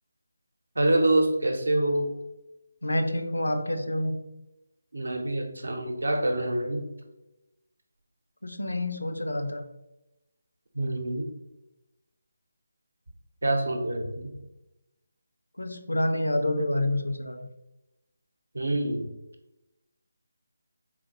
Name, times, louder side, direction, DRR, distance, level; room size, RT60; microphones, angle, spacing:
voice 1, 0.8-2.1 4.9-6.9 10.7-11.3 13.4-14.3 18.5-19.1, right 1 dB, 70° right, 4 dB, 0.7 m, -26 dB
voice 2, 2.8-4.2 8.4-9.6 15.6-17.5, left 1 dB, 80° left, 6 dB, 0.5 m, -28 dB
3.9 x 2.5 x 2.8 m, 0.96 s
figure-of-eight pair, 155°, 0 cm